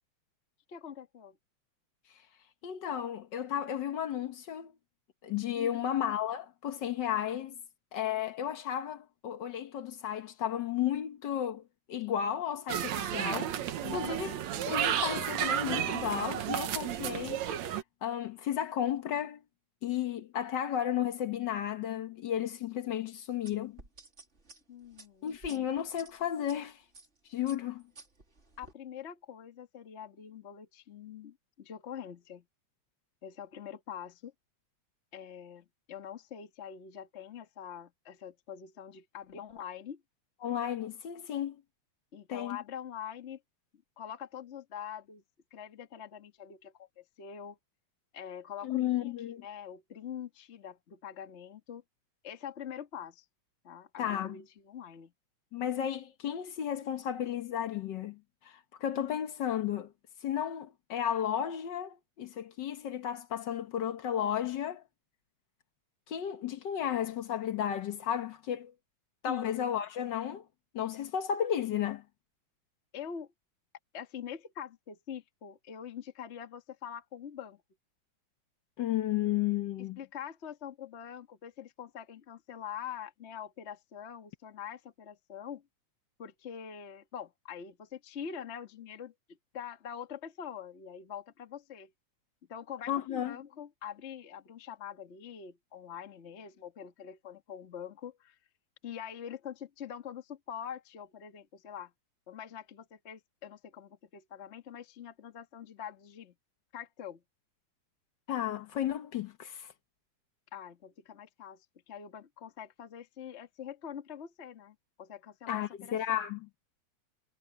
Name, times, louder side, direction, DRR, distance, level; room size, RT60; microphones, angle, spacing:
voice 1, 0.7-1.4 5.5-5.9 13.8-14.3 24.7-25.3 28.6-32.4 33.2-34.3 35.1-40.0 42.1-43.4 44.0-45.2 45.5-47.6 48.1-51.8 52.2-53.2 53.6-55.1 69.3-69.5 72.9-73.3 73.9-77.6 80.0-85.6 86.2-89.1 89.5-91.9 92.5-98.4 98.8-101.9 102.3-106.3 106.7-107.2 110.5-116.2, left 8 dB, 30° left, 1.2 m, -44 dB
voice 2, 2.6-4.7 5.2-7.5 7.9-11.6 11.9-13.5 13.9-14.3 14.6-17.4 18.0-19.4 19.8-23.8 25.2-26.8 27.3-27.8 40.4-41.6 42.3-42.6 48.6-49.4 54.0-54.4 55.5-59.9 60.2-64.8 66.1-68.7 69.2-70.4 70.7-72.0 78.8-80.0 92.9-93.4 108.3-109.7 115.5-116.5, left 10 dB, 60° left, 1.1 m, -33 dB
sound 1, 12.7-17.8, right 10 dB, 70° right, 2.4 m, -32 dB
sound 2, 23.4-26.6 26.9-27.2 27.5-28.7, right 3 dB, 25° right, 2.7 m, -53 dB
omnidirectional pair, 3.4 m